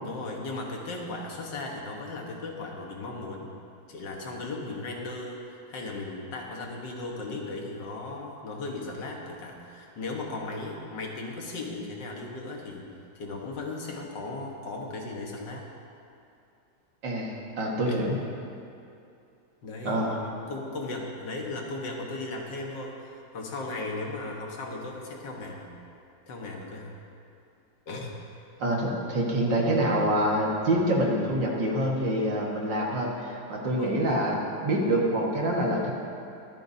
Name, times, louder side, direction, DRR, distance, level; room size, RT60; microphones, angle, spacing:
voice 1, 0.0-3.5 3.9-15.7 17.9-18.0 19.6-25.7 26.3-27.0 27.9-28.2 33.8-34.0, left 2 dB, 70° left, 0 dB, 2.0 m, -37 dB
voice 2, 17.0-18.2 19.8-20.2 28.6-35.9, right 1 dB, 70° right, -2 dB, 2.4 m, -26 dB
23.0 x 9.3 x 2.8 m, 2.6 s
omnidirectional pair, 2.0 m